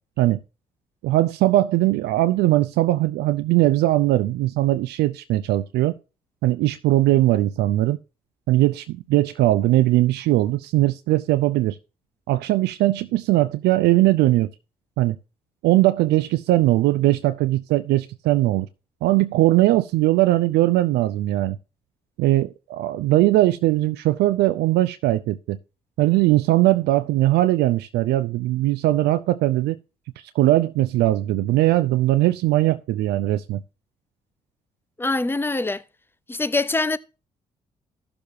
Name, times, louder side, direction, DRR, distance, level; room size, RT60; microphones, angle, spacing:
voice 1, 1.0-5.9 6.4-8.0 8.5-11.8 12.3-14.5 15.0-15.2 15.6-18.7 19.0-21.6 22.2-25.6 26.0-29.8 30.3-33.6, right 16 dB, 70° right, 0.5 m, -20 dB
voice 2, 35.0-35.8 36.3-37.0, left 2 dB, 10° left, 0.8 m, -23 dB
15.0 x 6.9 x 2.7 m
hypercardioid pair, 45°, 18 cm